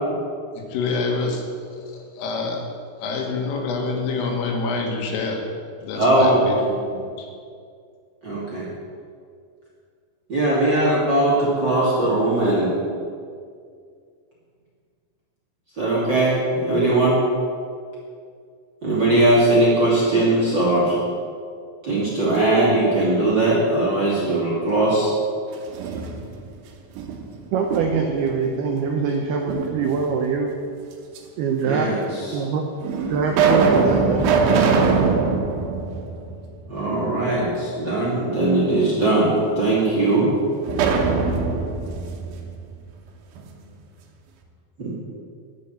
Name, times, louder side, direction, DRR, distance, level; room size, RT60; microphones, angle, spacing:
voice 1, 0.5-2.7 3.0-5.5 5.8-7.3, left 3 dB, 85° left, 1 dB, 4.2 m, -27 dB
voice 2, 5.9-6.4 8.2-8.7 10.3-12.7 15.8-17.2 18.8-21.0 21.8-25.1 31.6-32.0 32.3-32.4 36.7-40.3 44.8-44.9, right 2 dB, 35° right, -6 dB, 1.8 m, -19 dB
sound 1, 25.5-26.5 27.0-28.2 29.5-30.3 31.2-31.3 32.1-32.2 32.8-36.9 37.3-37.4 40.7-43.5, right 4 dB, 75° right, 3.3 m, -22 dB
voice 3, 27.5-30.6 31.4-32.0 32.3-32.7 33.1-34.3, right 5 dB, 90° right, 3 dB, 2.2 m, -23 dB
13.5 x 5.8 x 9.1 m, 2.2 s
omnidirectional pair, 5.7 m